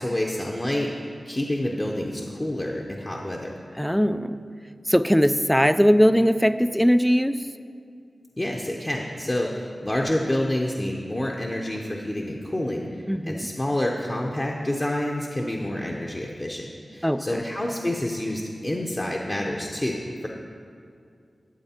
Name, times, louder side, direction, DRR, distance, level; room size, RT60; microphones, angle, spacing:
voice 1, 0.0-3.6 8.4-20.3, left 1 dB, 20° left, -1 dB, 0.7 m, -28 dB
voice 2, 3.8-4.4 4.9-7.5 13.1-13.5 17.0-17.4, equal, ahead, 12 dB, 0.3 m, -20 dB
12.5 x 7.8 x 4.3 m, 2.4 s
wide cardioid pair, 110°, 0 cm